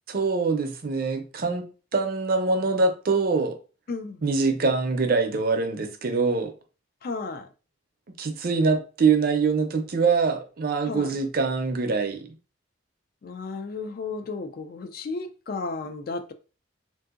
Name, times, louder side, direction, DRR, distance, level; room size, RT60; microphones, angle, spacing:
voice 1, 0.1-1.7 1.9-3.5 4.2-6.5 8.2-12.3, right 4 dB, 50° right, 0.5 m, -24 dB
voice 2, 3.9-4.2 7.0-7.5 10.9-11.1 13.2-16.3, left 3 dB, 50° left, 0.3 m, -33 dB
3.5 x 2.6 x 2.4 m
head